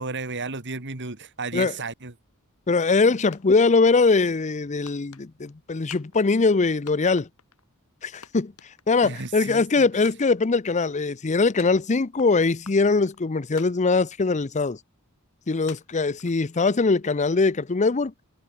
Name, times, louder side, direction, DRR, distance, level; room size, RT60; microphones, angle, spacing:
voice 1, 0.0-2.1 9.0-9.9, right 3 dB, 55° right, 2.8 m, -33 dB
voice 2, 2.7-7.3 8.0-8.5 8.9-14.8 15.5-18.1, left 4 dB, 30° left, 0.6 m, -22 dB
sound 1, 2.8-3.1 3.3-4.0 4.9-5.6 5.9-6.6 6.9-7.7 8.0-9.2 9.5-9.6 10.1-10.8 11.6-12.3 12.7-13.2 13.6-14.3 14.7-14.8 15.7-17.0, left 6 dB, 80° left, 5.6 m, -48 dB
head